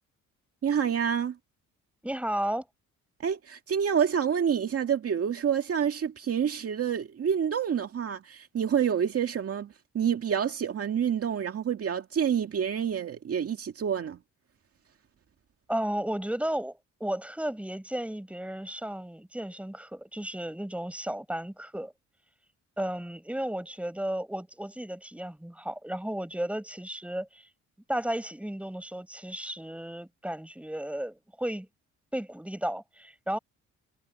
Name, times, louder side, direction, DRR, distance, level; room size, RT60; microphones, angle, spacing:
voice 1, 0.6-1.4 3.2-14.2, right 8 dB, 50° right, 2.1 m, -28 dB
voice 2, 2.0-2.7 15.7-21.9 22.8-27.5 27.9-31.7 32.1-33.4, right 1 dB, 5° right, 6.2 m, -34 dB
cardioid pair, 90°, 30 cm